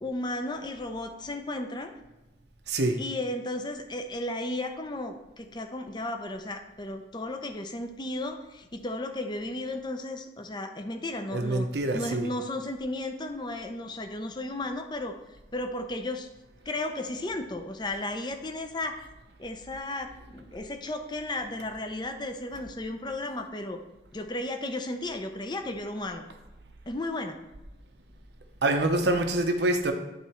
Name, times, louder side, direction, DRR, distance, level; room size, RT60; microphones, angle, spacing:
voice 1, 0.0-1.9 3.0-11.7 11.9-15.2 15.5-16.3 16.7-19.1 19.4-23.8 24.1-26.2 26.9-27.4, left 1 dB, 25° left, 6 dB, 0.6 m, -34 dB
voice 2, 2.7-3.0 11.3-12.3 28.6-29.9, right 2 dB, 70° right, 6 dB, 0.8 m, -25 dB
9.4 x 4.1 x 4.3 m, 1.0 s
head